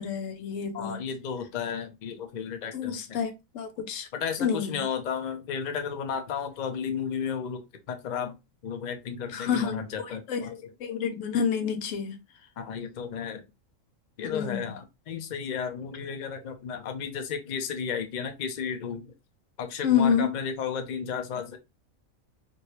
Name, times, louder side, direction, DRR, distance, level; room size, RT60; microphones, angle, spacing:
voice 1, 0.0-1.0 2.7-4.1 4.4-4.8 9.3-12.2 14.2-14.8 19.8-20.4, left 7 dB, 75° left, 1.0 m, -29 dB
voice 2, 0.7-3.2 4.1-8.4 8.6-10.5 12.6-13.5 14.2-19.1 19.6-21.6, left 7 dB, 55° left, 0.5 m, -33 dB
2.9 x 2.7 x 2.9 m
omnidirectional pair, 1.4 m